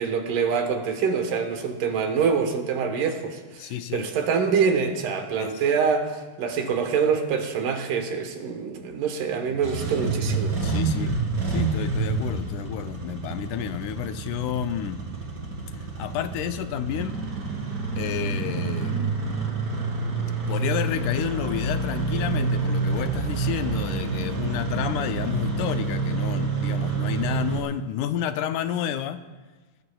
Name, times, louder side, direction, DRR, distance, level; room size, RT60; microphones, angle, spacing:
voice 1, 0.0-10.6, right 6 dB, 75° right, 5 dB, 2.8 m, -25 dB
voice 2, 3.6-4.1 5.4-5.5 10.6-11.1 11.5-15.0 16.0-17.2 18.0-19.2 20.5-29.2, left 10 dB, 80° left, 9 dB, 1.9 m, -30 dB
Engine starting, 9.5-27.6, right 4 dB, 30° right, 2.5 m, -28 dB
23.0 x 19.0 x 2.3 m, 1.3 s
omnidirectional pair, 3.9 m